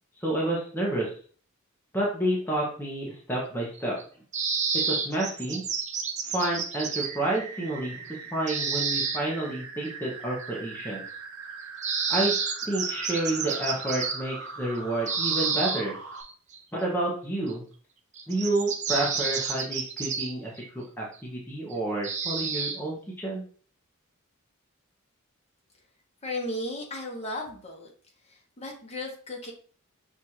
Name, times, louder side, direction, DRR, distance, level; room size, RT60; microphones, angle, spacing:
voice 1, 0.2-1.1 1.9-4.0 4.9-5.6 6.2-11.0 12.1-12.3 12.6-15.9 16.7-17.6 18.3-23.4, right 1 dB, 10° left, -4 dB, 0.7 m, -29 dB
sound 1, 3.8-4.0 4.3-7.2 8.5-9.2 11.8-14.2 15.1-15.8 16.2-16.6 17.5-17.6 18.2-20.7 21.0-21.1 21.7-21.8 22.0-22.8, right 5 dB, 35° right, 0.4 m, -30 dB
sound 2, 7.0-16.2, right 4 dB, 75° right, 0.7 m, -41 dB
voice 2, 26.2-27.9 28.3-29.5, left 1 dB, 30° left, 0 dB, 1.0 m, -35 dB
6.0 x 2.5 x 2.8 m, 0.44 s
head